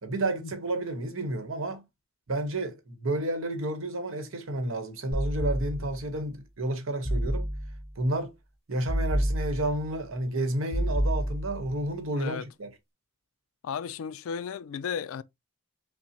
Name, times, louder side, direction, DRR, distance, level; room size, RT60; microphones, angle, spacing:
voice 1, 0.0-1.8 2.3-7.5 8.0-8.3 8.7-12.7, right 1 dB, 75° right, 0.9 m, -31 dB
sound 1, 5.1-6.1 7.0-7.9 8.9-10.0 10.7-11.8, equal, 30° right, 1.3 m, -29 dB
voice 2, 12.1-12.5 13.6-15.2, left 7 dB, 80° left, 0.3 m, -34 dB
5.7 x 2.0 x 2.7 m
head